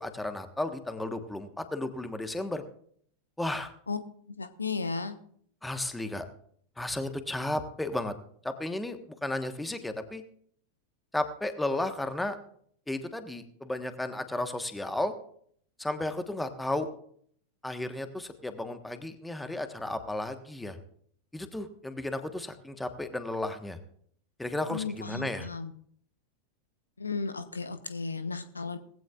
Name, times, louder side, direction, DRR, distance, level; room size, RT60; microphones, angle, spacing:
voice 1, 0.0-2.6 3.4-3.7 5.6-6.3 6.8-8.1 8.4-10.2 11.1-12.4 12.9-15.1 15.8-16.9 17.6-20.8 21.3-23.8 24.4-25.5, left 1 dB, 5° left, 8 dB, 1.4 m, -33 dB
voice 2, 4.3-5.2 24.7-25.7 27.0-28.8, left 4 dB, 75° left, 11 dB, 0.9 m, -34 dB
19.5 x 15.5 x 2.5 m, 0.62 s
figure-of-eight pair, 90°, 0 cm